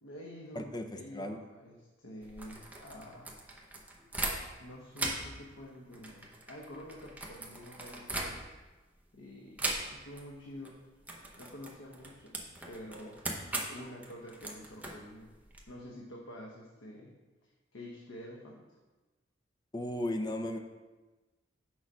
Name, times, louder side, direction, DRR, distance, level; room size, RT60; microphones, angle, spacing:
voice 1, 0.0-3.4 4.6-8.6 9.1-10.8 11.4-13.2 13.7-15.3 15.7-17.2 17.7-18.8, left 1 dB, 85° left, -2 dB, 0.9 m, -48 dB
sound 1, 2.2-4.7 4.9-8.7 9.6-10.3 10.5-10.7 11.0-15.6, right 2 dB, 10° right, 0.8 m, -39 dB
voice 2, 19.7-20.6, left 1 dB, 20° left, 5 dB, 0.5 m, -35 dB
6.3 x 4.8 x 5.4 m, 1.2 s
head